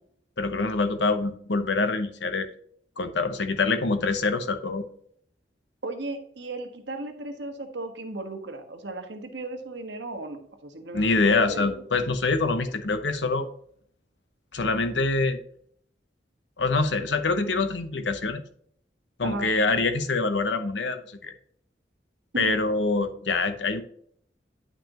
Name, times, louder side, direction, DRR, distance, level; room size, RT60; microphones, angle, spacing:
voice 1, 0.4-2.5 3.0-4.8 10.9-13.5 14.5-15.4 16.6-18.4 19.2-21.3 22.4-23.8, left 3 dB, 75° left, 9 dB, 0.9 m, -25 dB
voice 2, 5.8-11.8 19.2-19.5 22.3-22.6, right 2 dB, 70° right, 5 dB, 1.4 m, -36 dB
9.4 x 6.0 x 3.0 m, 0.65 s
head